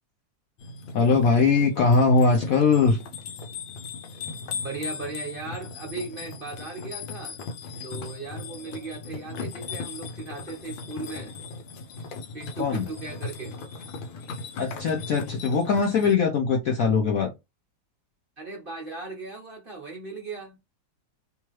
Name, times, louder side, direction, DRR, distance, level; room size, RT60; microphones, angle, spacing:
sound 1, 0.6-16.2, left 4 dB, 85° left, 1.5 m, -38 dB
voice 1, 0.9-3.0 12.6-12.8 14.6-17.3, left 4 dB, 70° left, 0.8 m, -21 dB
voice 2, 4.5-7.4 7.8-11.3 12.3-13.6 18.4-20.6, right 3 dB, 40° right, 0.9 m, -37 dB
3.4 x 3.0 x 3.0 m
omnidirectional pair, 2.0 m